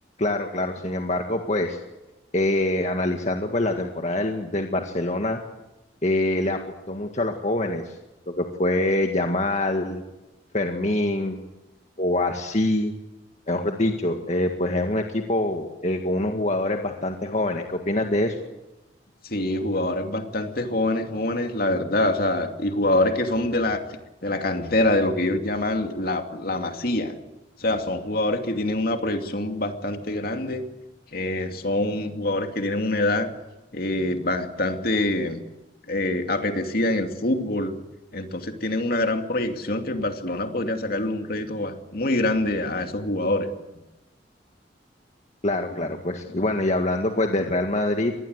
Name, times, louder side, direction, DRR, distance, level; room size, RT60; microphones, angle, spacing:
voice 1, 0.2-1.8 2.3-5.4 6.0-6.6 6.9-7.8 8.3-10.0 10.5-11.4 12.0-12.9 13.5-18.4 45.4-48.1, left 1 dB, 40° left, 4 dB, 1.9 m, -25 dB
voice 2, 19.2-23.8 24.2-27.1 27.6-30.6 31.1-33.3 33.7-35.4 35.9-37.8 38.1-43.5, left 1 dB, 55° left, 5 dB, 2.6 m, -25 dB
25.0 x 20.0 x 8.2 m, 0.97 s
head